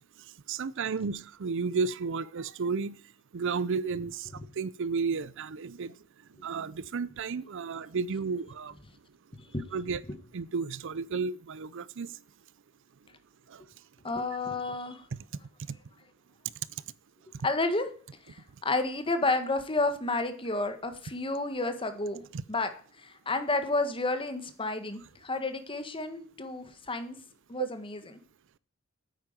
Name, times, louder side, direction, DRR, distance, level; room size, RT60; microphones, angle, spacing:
voice 1, 0.5-3.0 3.3-4.3 4.6-5.9 6.4-8.7 9.7-10.0 10.3-12.1 15.1-15.2 15.7-15.8 27.6-27.7, right 5 dB, 65° right, 0.5 m, -32 dB
voice 2, 14.0-15.1 17.4-17.9 18.2-22.2 22.5-22.7 23.0-27.2 27.5-28.2, left 2 dB, 25° left, 1.6 m, -31 dB
9.4 x 9.3 x 7.9 m
head